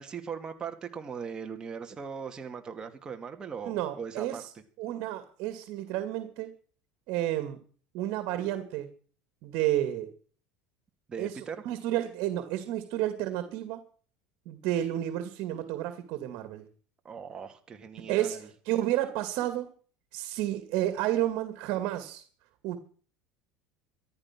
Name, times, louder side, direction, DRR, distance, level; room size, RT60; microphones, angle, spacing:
voice 1, 0.0-4.4 11.1-11.6 17.0-18.5, right 6 dB, 25° right, 5 dB, 2.3 m, -39 dB
voice 2, 3.6-4.5 4.8-6.5 7.1-7.6 7.9-8.9 9.4-10.1 11.2-13.9 14.5-16.6 18.1-19.7 20.1-22.2 22.6-22.8, right 13 dB, 65° right, 10 dB, 2.2 m, -31 dB
13.5 x 11.5 x 6.0 m, 0.42 s
supercardioid pair, 125°, 3 cm